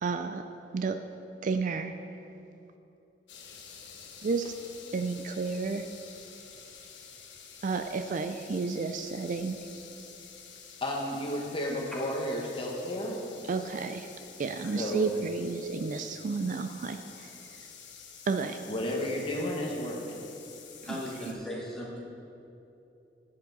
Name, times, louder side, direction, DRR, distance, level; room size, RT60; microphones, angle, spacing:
voice 1, 0.0-0.4 0.7-1.0 1.4-1.9 4.2-4.5 4.9-5.9 7.6-9.6 13.5-14.1 14.4-17.3 18.3-18.6, right 4 dB, 45° right, 8 dB, 0.4 m, -31 dB
sound 1, 3.3-21.3, left 6 dB, 85° left, 1.1 m, -49 dB
voice 2, 10.8-13.2 14.7-15.1 18.7-20.2, left 1 dB, 30° left, -1 dB, 1.2 m, -32 dB
voice 3, 20.9-22.0, equal, 5° left, -6 dB, 2.1 m, -37 dB
11.5 x 8.4 x 4.0 m, 2.9 s
head